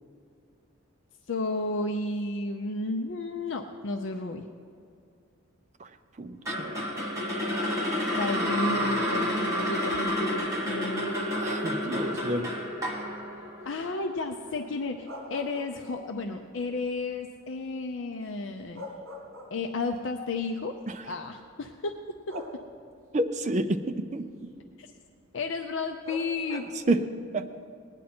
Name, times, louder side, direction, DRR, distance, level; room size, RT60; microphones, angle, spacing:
voice 1, 1.3-4.5 8.2-11.1 13.6-18.8 19.5-20.7 21.0-21.9 22.3-22.4 24.8-24.9 25.3-27.1, left 3 dB, 65° left, 4 dB, 0.5 m, -32 dB
voice 2, 6.2-6.8 11.4-12.5 20.9-21.0 23.1-24.3 26.9-27.0 27.3-27.4, right 2 dB, 35° right, 7 dB, 0.5 m, -29 dB
sound 1, 6.4-14.6, equal, 15° right, 1.3 m, -30 dB
sound 2, 11.9-12.4 14.8-16.2 16.6-16.7 18.3-18.4 18.7-19.9 20.9-21.0 22.3-23.0 26.0-26.9, left 1 dB, 75° right, 1.9 m, -42 dB
18.0 x 9.8 x 4.3 m, 2.3 s
head